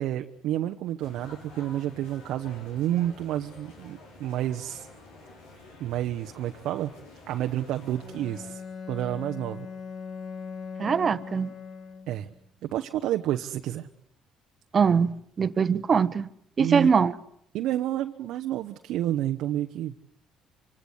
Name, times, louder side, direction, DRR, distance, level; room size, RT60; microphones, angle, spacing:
voice 1, 0.0-4.9 5.8-6.9 7.3-8.6 8.9-9.7 12.1-12.3 12.6-13.9 16.6-16.9 17.5-19.9, right 12 dB, 70° right, 1.0 m, -30 dB
sound 1, 1.0-8.5, left 2 dB, 80° left, 6.1 m, -49 dB
Bowed string instrument, 8.0-12.4, left 5 dB, 50° left, 1.9 m, -40 dB
voice 2, 10.8-11.5 14.7-16.3 16.6-17.1, right 6 dB, 40° right, 1.2 m, -22 dB
25.5 x 25.0 x 8.2 m
hypercardioid pair, 55°, 0 cm